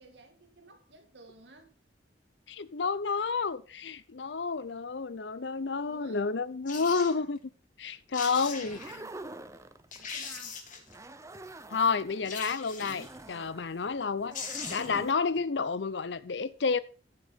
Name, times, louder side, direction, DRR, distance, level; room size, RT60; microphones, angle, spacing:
voice 1, 0.0-1.7 5.9-6.3 6.7-7.3 8.4-9.2 10.0-10.6 12.3-12.6, right 2 dB, 80° right, 2.1 m, -54 dB
voice 2, 2.5-7.4 7.8-8.8 11.7-16.8, left 5 dB, 85° left, 0.7 m, -30 dB
sound 1, 6.7-7.1 7.9-8.0 8.1-8.9 9.5-9.6 9.9-10.9 12.3-13.2 14.0-14.1 14.3-15.0 15.4-15.5, left 5 dB, 50° left, 3.0 m, -40 dB
sound 2, 8.6-10.2 10.8-12.3 12.8-15.1, right 2 dB, 15° right, 0.8 m, -46 dB
15.0 x 6.5 x 3.6 m
head